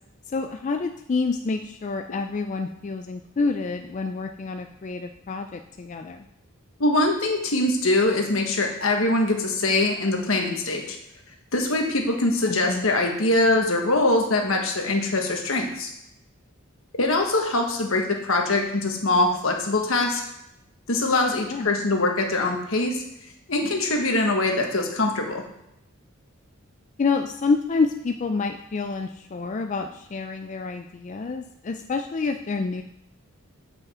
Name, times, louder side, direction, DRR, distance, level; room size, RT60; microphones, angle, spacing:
voice 1, 0.3-6.2 12.5-12.8 21.5-21.7 27.0-32.8, left 4 dB, 35° left, 6 dB, 0.4 m, -28 dB
voice 2, 6.8-11.0 11.5-15.9 16.9-20.2 20.9-23.0 23.5-25.4, left 2 dB, 75° left, 2 dB, 1.4 m, -23 dB
8.5 x 5.1 x 4.3 m, 0.81 s
head